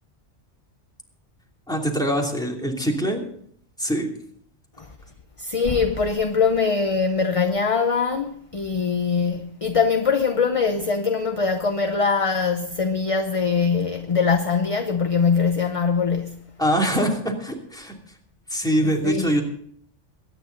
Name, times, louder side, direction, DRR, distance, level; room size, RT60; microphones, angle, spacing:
voice 1, 1.7-3.2 3.8-4.1 16.6-17.9 18.5-19.4, equal, 5° left, 2.8 m, -23 dB
voice 2, 5.4-16.4 18.8-19.3, left 5 dB, 30° left, 0.8 m, -22 dB
22.0 x 10.0 x 3.9 m
omnidirectional pair, 1.2 m